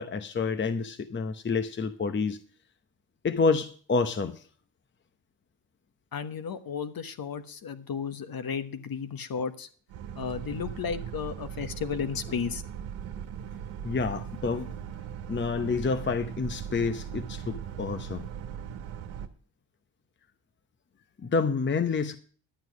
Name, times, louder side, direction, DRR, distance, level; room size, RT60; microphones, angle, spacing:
voice 1, 0.0-2.4 3.2-4.4 13.8-14.8 15.3-18.3 21.2-22.1, left 4 dB, 25° left, 0.8 m, -28 dB
voice 2, 6.1-9.7 10.1-12.6, left 6 dB, 50° left, 1.3 m, -33 dB
Boat Water vehicle, 9.9-19.3, right 8 dB, 80° right, 1.3 m, -39 dB
11.5 x 7.9 x 6.2 m
cardioid pair, 85°, 46 cm